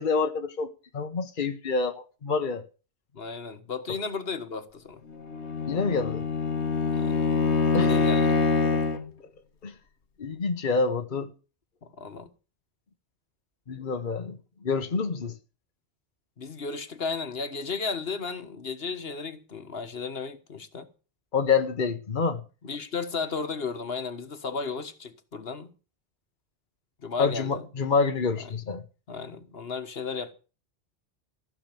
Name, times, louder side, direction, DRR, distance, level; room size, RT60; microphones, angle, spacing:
voice 1, 0.0-2.7 5.7-6.2 7.7-7.9 9.6-9.7 10.2-11.3 13.7-14.4 14.6-15.3 21.3-22.4 27.2-28.8, left 4 dB, 50° left, 1.2 m, -27 dB
voice 2, 3.1-5.0 6.9-7.3 7.7-8.3 11.8-12.3 16.4-20.9 22.6-25.7 27.0-27.7 28.4-28.5 29.1-30.3, left 5 dB, 65° left, 1.6 m, -34 dB
Bowed string instrument, 5.2-9.1, left 4 dB, 90° left, 1.4 m, -25 dB
15.5 x 6.1 x 9.0 m
omnidirectional pair, 1.1 m